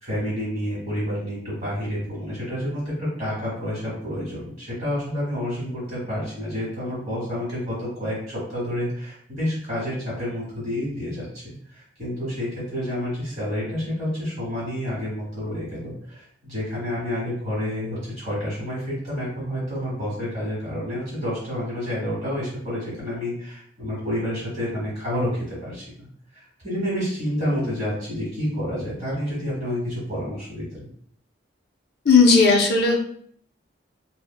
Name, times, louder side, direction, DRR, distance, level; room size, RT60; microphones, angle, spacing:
voice 1, 0.0-11.4 11.7-26.1 26.3-30.9, equal, 35° right, -8 dB, 1.1 m, -29 dB
voice 2, 32.1-33.0, left 4 dB, 50° left, 0 dB, 0.5 m, -15 dB
3.1 x 2.1 x 2.2 m, 0.62 s
head